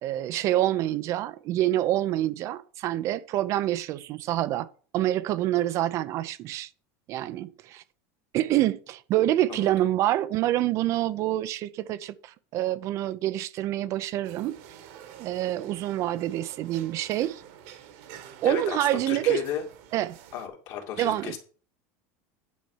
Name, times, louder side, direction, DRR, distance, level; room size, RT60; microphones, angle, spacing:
voice 1, 0.0-4.7 4.9-6.7 7.1-7.8 8.3-14.8 15.2-17.4 18.4-19.4 19.9-20.2 21.0-21.4, right 14 dB, 45° right, 0.6 m, -27 dB
voice 2, 9.5-9.9 18.4-19.6 20.3-21.4, left 9 dB, 50° left, 2.4 m, -34 dB
sound 1, 14.2-20.5, right 9 dB, 65° right, 1.7 m, -48 dB
9.4 x 4.4 x 7.2 m
supercardioid pair, 150°, 7 cm